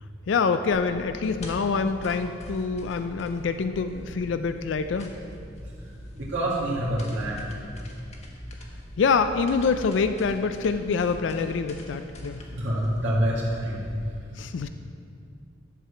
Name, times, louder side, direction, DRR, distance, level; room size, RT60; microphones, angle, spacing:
voice 1, 0.3-5.1 9.0-12.4 14.4-14.7, left 5 dB, 75° left, 9 dB, 0.4 m, -25 dB
sound 1, 0.7-14.1, equal, 35° left, 1.1 m, -42 dB
Chink clink, 2.1-6.3, left 4 dB, 5° left, 1.6 m, -56 dB
voice 2, 5.8-7.5 12.5-13.8, right 1 dB, 80° right, -8 dB, 1.9 m, -27 dB
11.0 x 4.8 x 6.7 m, 2.4 s
head